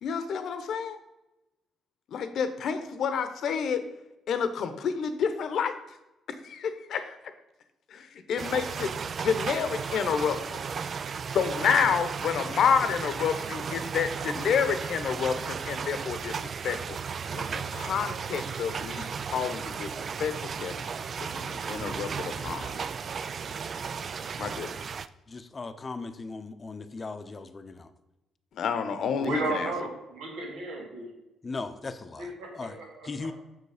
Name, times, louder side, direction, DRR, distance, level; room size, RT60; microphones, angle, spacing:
voice 1, 0.0-1.0 2.1-3.8 4.3-5.7 6.4-7.2 7.9-10.6 11.3-16.3 16.6-20.8 21.2-22.8 24.4-24.7 28.5-29.7, left 6 dB, 70° left, 10 dB, 0.9 m, -29 dB
sound 1, 8.4-25.1, right 6 dB, 50° right, 0.3 m, -35 dB
voice 2, 25.3-27.9 31.4-32.8 33.0-33.3, left 3 dB, 30° left, 10 dB, 0.7 m, -38 dB
voice 3, 29.2-31.1 32.2-32.5 32.8-33.3, right 2 dB, 85° right, -1 dB, 2.5 m, -34 dB
6.9 x 6.4 x 5.0 m, 0.96 s
cardioid pair, 90°, 0 cm